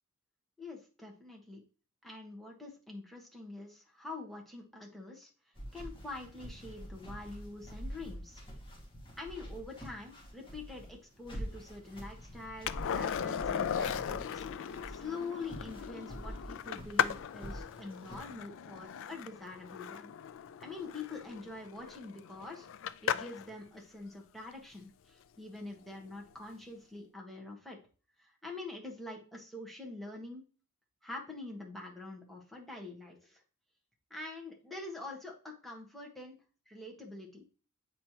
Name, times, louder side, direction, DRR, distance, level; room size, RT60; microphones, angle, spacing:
voice 1, 0.6-1.6 2.0-5.3 5.7-8.4 9.2-20.1 20.6-22.7 23.0-27.8 28.2-30.5 31.0-33.4 34.1-36.4 36.7-37.4, left 2 dB, ahead, -1 dB, 1.4 m, -45 dB
sound 1, 5.6-18.2, equal, 25° left, 2.0 m, -46 dB
Skateboard, 12.7-23.5 26.1-26.2, left 8 dB, 60° left, 0.3 m, -37 dB
8.5 x 4.3 x 3.0 m, 0.36 s
head